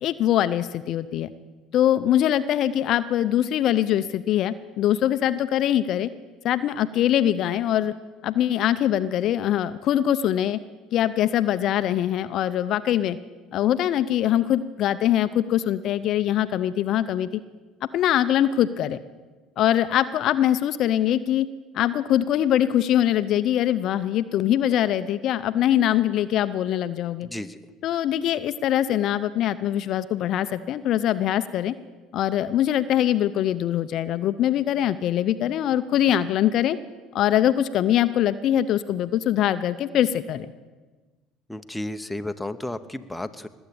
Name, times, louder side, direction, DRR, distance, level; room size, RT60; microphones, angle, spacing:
voice 1, 0.0-1.3 1.7-6.1 6.4-7.9 8.2-10.6 10.9-13.2 13.5-17.3 17.9-19.0 19.6-21.5 21.7-27.3 27.8-31.7 32.1-36.8 37.1-40.5, left 11 dB, 60° left, 13 dB, 0.5 m, -23 dB
voice 2, 27.2-27.6 41.5-43.5, left 1 dB, 5° left, 8 dB, 0.9 m, -33 dB
20.0 x 7.9 x 8.6 m, 1.3 s
hypercardioid pair, 75°, 0 cm